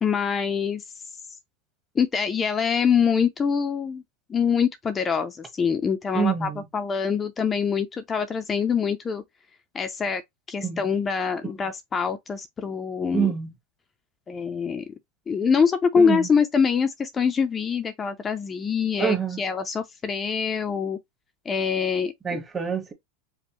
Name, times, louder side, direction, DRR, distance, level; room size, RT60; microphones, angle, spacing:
voice 1, 0.0-0.8 2.0-4.0 4.3-9.2 9.7-10.2 10.5-13.3 14.3-14.8 15.3-21.0 21.5-22.4, left 6 dB, 25° left, 0.5 m, -24 dB
voice 2, 6.1-6.6 10.6-10.8 13.1-13.5 16.0-16.3 19.0-19.4 22.2-22.9, right 7 dB, 20° right, 1.2 m, -26 dB
5.2 x 2.1 x 3.0 m
hypercardioid pair, 115°, 0 cm